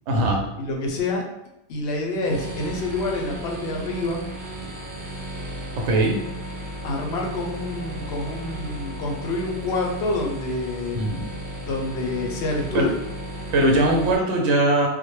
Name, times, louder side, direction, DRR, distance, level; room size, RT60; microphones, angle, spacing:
voice 1, 0.1-0.4 5.8-6.2 10.9-11.3 12.7-12.9 13.5-14.9, right 1 dB, 80° right, 0 dB, 0.9 m, -20 dB
voice 2, 0.6-1.2 1.7-4.2 6.8-11.0 11.6-13.0, left 2 dB, 70° left, 1 dB, 0.8 m, -27 dB
sound 1, 2.2-14.2, right 1 dB, 60° right, 0.5 m, -35 dB
2.1 x 2.1 x 2.9 m, 0.85 s
omnidirectional pair, 1.2 m